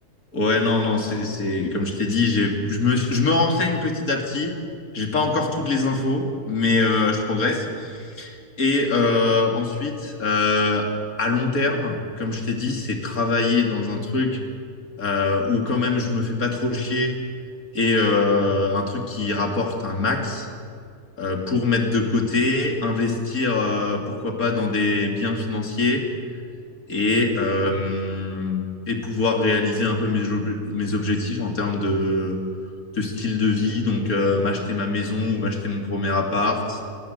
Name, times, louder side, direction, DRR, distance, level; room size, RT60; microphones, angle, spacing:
voice 1, 0.3-4.5 4.9-10.9 11.2-14.4 15.0-17.2 17.7-20.5 21.2-26.0 26.9-32.4 32.9-36.8, left 3 dB, 65° left, 2 dB, 3.2 m, -23 dB
25.0 x 19.0 x 8.1 m, 2.3 s
omnidirectional pair, 1.6 m